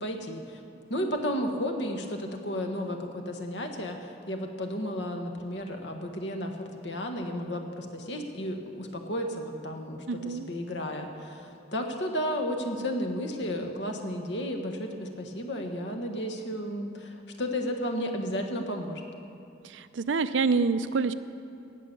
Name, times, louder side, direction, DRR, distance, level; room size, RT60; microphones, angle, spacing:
voice 1, 0.0-0.6 0.9-19.0, equal, 70° left, 3 dB, 1.5 m, -33 dB
voice 2, 10.1-10.5 19.6-21.1, right 4 dB, 85° right, 12 dB, 0.5 m, -27 dB
18.5 x 7.0 x 7.1 m, 2.8 s
head